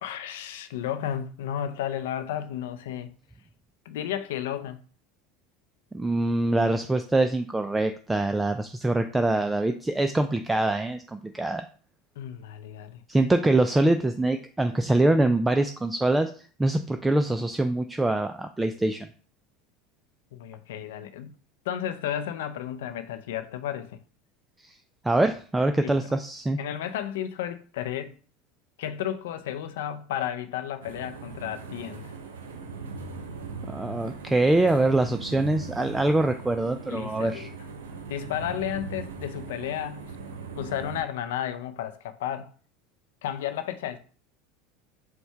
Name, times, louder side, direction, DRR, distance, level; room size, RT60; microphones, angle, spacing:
voice 1, 0.0-3.1 3.9-4.8 12.2-13.0 20.3-21.3 21.7-24.0 25.8-25.9 26.6-28.2 28.8-32.1 36.9-37.5 38.1-40.1 40.6-42.5 43.2-44.0, left 10 dB, 80° left, 0.4 m, -33 dB
voice 2, 5.9-11.6 13.1-19.1 24.6-24.7 25.0-26.6 33.7-37.5, right 2 dB, 10° right, 0.3 m, -24 dB
sound 1, 30.8-41.0, right 4 dB, 90° right, 0.6 m, -39 dB
4.4 x 2.2 x 4.4 m
hypercardioid pair, 90°, 0 cm